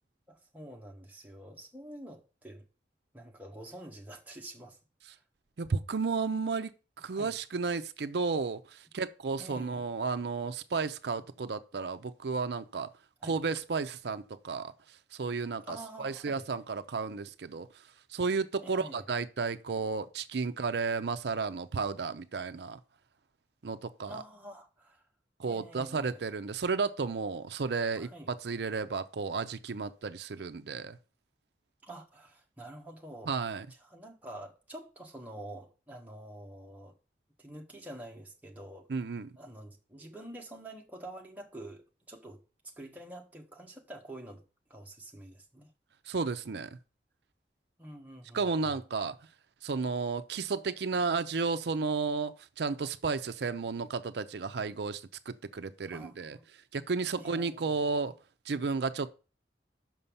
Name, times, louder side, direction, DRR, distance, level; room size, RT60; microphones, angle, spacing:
voice 1, 0.3-2.6 3.1-4.8 5.1-5.2 7.1-7.3 9.4-9.8 13.2-13.4 15.7-16.4 18.6-19.1 24.1-25.0 25.5-26.2 27.9-28.3 31.8-33.4 33.8-36.9 37.4-38.9 39.4-44.4 44.7-45.7 47.8-48.8 55.9-56.4 57.2-57.8, right 1 dB, 10° right, 1.2 m, -47 dB
voice 2, 5.6-12.9 13.2-17.8 18.1-22.8 23.6-24.2 25.4-31.0 33.3-33.7 38.9-39.3 46.1-46.8 48.3-49.2 49.6-58.2 58.5-59.1, right 4 dB, 75° right, 0.5 m, -33 dB
6.1 x 5.5 x 7.0 m
head